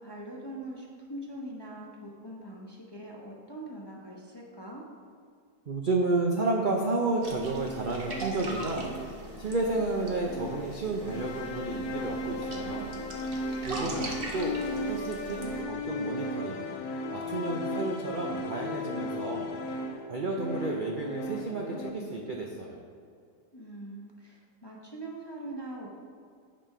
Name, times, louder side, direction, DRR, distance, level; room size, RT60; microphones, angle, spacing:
voice 1, 0.0-4.8 13.7-14.2 23.5-25.9, right 1 dB, 20° left, -3 dB, 0.6 m, -42 dB
voice 2, 5.7-8.9 9.4-13.0 13.6-14.6 14.9-16.6 17.1-19.5 20.1-22.8, right 2 dB, 60° right, 0 dB, 0.5 m, -31 dB
sound 1, 7.2-15.6, right 2 dB, 40° right, 1.1 m, -41 dB
sound 2, 8.0-21.9, left 2 dB, 70° left, 1.2 m, -36 dB
9.2 x 4.4 x 5.5 m, 2.2 s
omnidirectional pair, 1.8 m